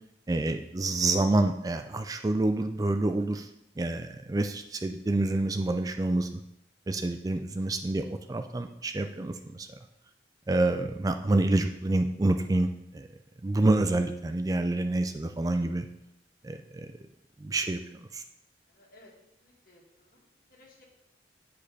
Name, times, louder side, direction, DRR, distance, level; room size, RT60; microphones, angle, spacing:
voice 1, 0.3-3.5 3.8-6.4 6.9-9.7 10.5-13.1 13.4-15.9 16.4-16.9 17.4-17.8 18.1-18.2, right 2 dB, 20° right, 7 dB, 0.3 m, -27 dB
voice 2, 18.7-19.1 19.4-20.2 20.5-20.8, left 2 dB, 55° left, -2 dB, 2.0 m, -58 dB
8.5 x 5.2 x 4.1 m, 0.81 s
head